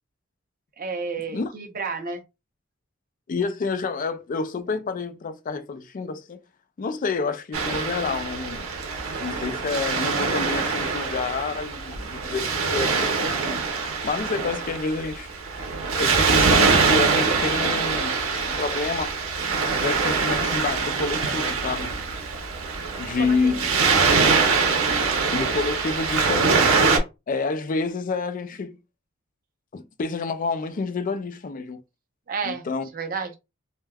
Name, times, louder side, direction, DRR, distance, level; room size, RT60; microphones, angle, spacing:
voice 1, 0.8-2.2 23.2-23.9 32.3-32.7 32.9-33.4, right 5 dB, 45° right, 0.6 m, -31 dB
voice 2, 3.3-6.4 6.8-8.7 9.2-13.6 14.0-15.3 16.0-18.2 18.5-19.1 19.8-22.0 23.0-23.7 25.3-26.8 27.3-28.8 29.7-31.8 32.4-32.9, left 4 dB, 40° left, 0.4 m, -28 dB
Waves surf, 7.5-27.0, right 4 dB, 90° right, 0.7 m, -23 dB
3.3 x 2.1 x 2.2 m
head